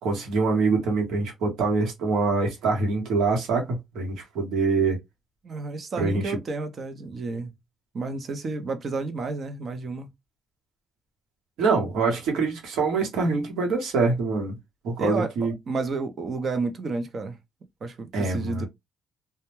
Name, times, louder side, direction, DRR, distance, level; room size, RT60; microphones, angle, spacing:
voice 1, 0.0-5.0 6.0-6.4 11.6-14.6 14.8-15.5 18.1-18.7, right 4 dB, 85° right, 1.0 m, -24 dB
voice 2, 5.4-7.5 7.9-10.1 15.0-17.4 17.8-18.7, right 3 dB, 50° right, 0.6 m, -31 dB
2.2 x 2.1 x 3.0 m
cardioid pair, 90°, 0 cm